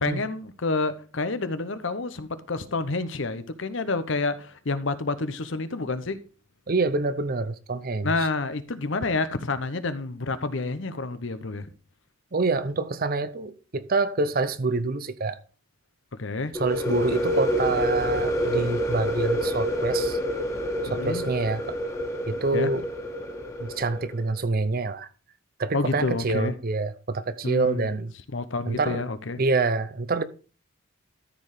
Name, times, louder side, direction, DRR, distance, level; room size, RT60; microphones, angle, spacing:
voice 1, 0.0-6.2 8.0-11.7 16.2-16.5 20.9-21.2 22.5-22.7 25.7-26.5 27.4-27.9 28.3-29.4, left 3 dB, 60° left, 0.9 m, -29 dB
voice 2, 6.7-8.3 12.3-15.4 16.6-20.2 20.8-21.8 22.3-22.9 23.6-25.1 25.6-28.1 28.7-29.0 29.4-30.2, right 3 dB, 45° right, 0.7 m, -26 dB
sound 1, 16.5-24.2, equal, 15° left, 1.7 m, -27 dB
13.0 x 4.7 x 4.9 m
head